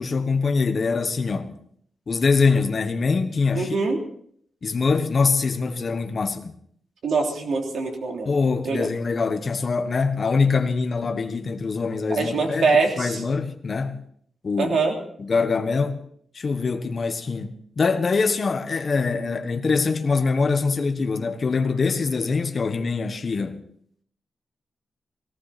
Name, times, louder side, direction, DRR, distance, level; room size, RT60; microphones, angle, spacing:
voice 1, 0.0-1.6 2.1-3.8 4.6-6.6 8.2-12.7 13.0-14.0 14.4-14.8 15.2-16.0 16.3-23.6, left 4 dB, 40° left, 1.3 m, -23 dB
voice 2, 3.5-4.0 7.0-8.3 8.6-8.9 12.1-13.2 14.6-14.9, right 4 dB, 75° right, 3.2 m, -23 dB
18.0 x 17.5 x 4.2 m
wide cardioid pair, 170°, 0 cm